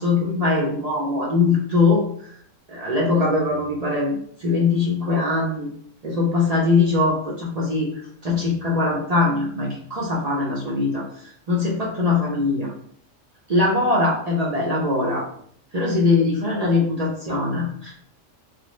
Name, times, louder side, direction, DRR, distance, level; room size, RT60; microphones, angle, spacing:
voice 1, 0.0-2.4 2.7-5.7 6.0-7.9 8.2-12.7 13.5-15.3 15.7-18.0, left 3 dB, 45° right, -4 dB, 0.5 m, -22 dB
3.2 x 2.0 x 3.0 m, 0.62 s
omnidirectional pair, 1.4 m